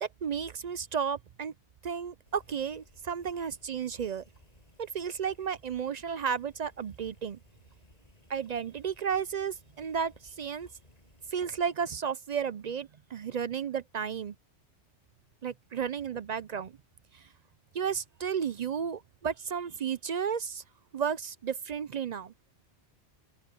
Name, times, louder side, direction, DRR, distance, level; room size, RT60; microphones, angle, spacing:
voice 1, 0.0-1.5 1.8-4.2 4.8-7.4 8.3-10.7 11.3-14.3 15.4-16.8 17.1-17.3 17.7-20.6 20.9-22.3, right 7 dB, 55° right, 0.4 m, -33 dB
sound 1, 2.3-11.6, left 1 dB, 35° left, 7.3 m, -60 dB
open air
omnidirectional pair, 1.2 m